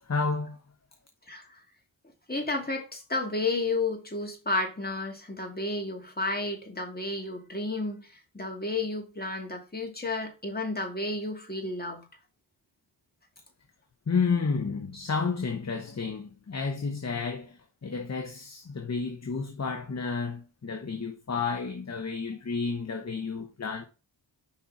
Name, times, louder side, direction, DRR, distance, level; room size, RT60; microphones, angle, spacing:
voice 1, 0.0-0.6 14.1-23.8, left 4 dB, 35° left, 1.0 m, -31 dB
voice 2, 1.3-1.6 2.3-12.1, left 2 dB, 20° left, 2.2 m, -32 dB
5.5 x 4.3 x 4.8 m
cardioid pair, 45°, 45 cm